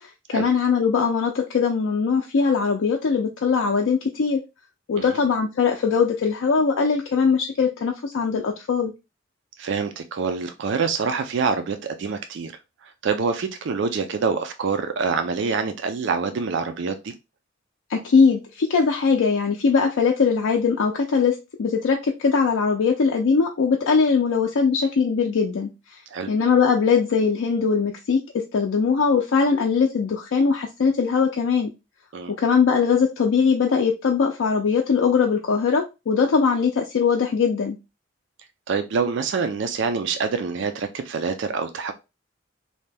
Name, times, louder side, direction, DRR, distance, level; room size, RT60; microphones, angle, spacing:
voice 1, 0.0-4.4 4.9-8.9 17.9-26.0 26.3-31.7 32.4-37.8, left 5 dB, 85° left, 1 dB, 0.4 m, -21 dB
voice 2, 9.6-12.5 13.0-17.1 26.1-26.3 32.1-32.3 38.7-41.9, right 5 dB, 65° right, 8 dB, 0.4 m, -26 dB
2.7 x 2.2 x 3.2 m, 0.26 s
head